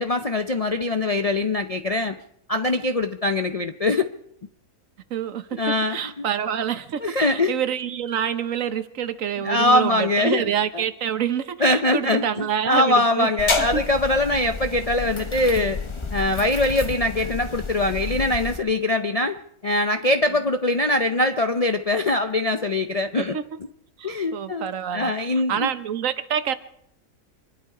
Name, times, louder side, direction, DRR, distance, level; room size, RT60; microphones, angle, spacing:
voice 1, 0.0-2.2 2.5-4.1 5.5-6.0 7.0-7.5 9.4-10.8 11.6-15.8 16.1-19.4 19.6-23.3 24.0-25.7, left 2 dB, 45° left, 0.4 m, -22 dB
voice 2, 5.1-13.3 13.7-13.8 23.3-23.4 24.0-26.5, right 9 dB, 65° right, 1.2 m, -27 dB
sound 1, 13.4-18.6, left 3 dB, 25° left, 0.9 m, -30 dB
25.0 x 11.5 x 4.9 m
omnidirectional pair, 1.5 m